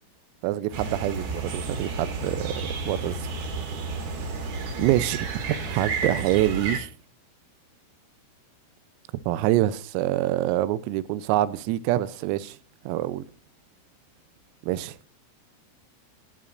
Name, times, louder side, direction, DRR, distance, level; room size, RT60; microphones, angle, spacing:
voice 1, 0.4-2.5 2.9-3.2 4.8-6.9 9.3-12.6 12.9-13.2 14.6-15.0, right 14 dB, 85° right, 3.4 m, -25 dB
sound 1, 0.7-6.8, right 4 dB, 50° right, 4.3 m, -31 dB
13.5 x 13.0 x 2.5 m
omnidirectional pair, 6.0 m